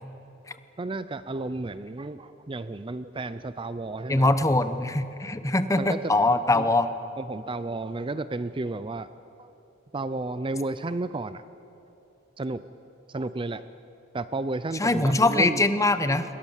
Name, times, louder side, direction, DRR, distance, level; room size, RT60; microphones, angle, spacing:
voice 1, 0.8-4.3 5.7-6.1 6.5-6.7 7.2-9.1 9.4-9.5 9.9-11.4 12.4-12.7 13.1-13.7 14.1-15.6, right 2 dB, 25° right, 13 dB, 0.5 m, -32 dB
voice 2, 4.1-6.9 14.8-16.2, left 2 dB, 15° left, 11 dB, 1.0 m, -22 dB
28.0 x 21.5 x 7.3 m, 2.9 s
head